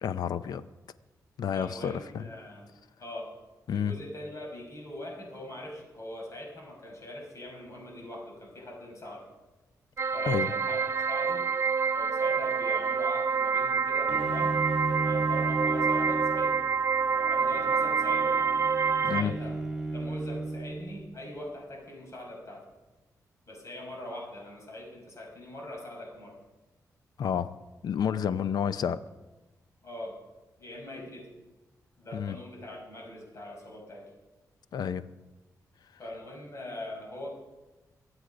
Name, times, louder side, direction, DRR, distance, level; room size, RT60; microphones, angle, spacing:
voice 1, 0.0-0.6 1.4-2.2 3.7-3.9 10.3-10.5 19.0-19.3 27.2-27.5 27.8-29.0 32.1-32.4 34.7-35.1, left 8 dB, 80° left, 14 dB, 0.6 m, -30 dB
voice 2, 1.5-2.7 3.0-3.3 3.7-9.3 10.1-11.5 11.9-16.7 17.3-18.4 19.1-19.6 19.9-22.7 23.5-26.4 29.8-30.2 30.6-31.4 32.0-34.1 36.0-37.3, left 1 dB, 50° left, 0 dB, 5.5 m, -42 dB
sound 1, 10.0-19.2, right 5 dB, 40° right, 0.7 m, -27 dB
Bowed string instrument, 14.1-21.1, right 2 dB, 5° right, 1.9 m, -34 dB
23.5 x 8.2 x 5.1 m, 1.1 s
cardioid pair, 95°, 7 cm